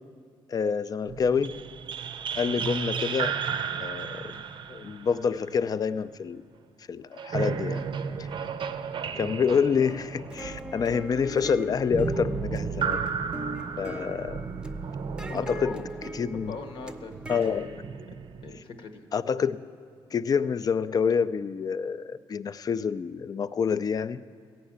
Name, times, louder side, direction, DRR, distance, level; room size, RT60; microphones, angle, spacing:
voice 1, 0.5-1.6 2.4-3.4 3.8-4.3 4.7-6.4 6.9-7.8 8.2-8.3 9.1-13.0 13.8-14.5 15.3-15.8 16.1-16.5 17.3-17.7 19.1-19.6 20.1-24.2, left 6 dB, 45° left, 15 dB, 0.4 m, -27 dB
sound 1, 1.1-6.1 7.1-18.6, right 6 dB, 60° right, 0.5 m, -34 dB
sound 2, 9.7-17.7, right 1 dB, 10° right, 0.6 m, -41 dB
voice 2, 15.3-15.8 16.3-18.2 18.4-19.0, left 4 dB, 70° left, 5 dB, 1.0 m, -41 dB
15.5 x 5.7 x 8.7 m, 2.2 s
cardioid pair, 85°, 9 cm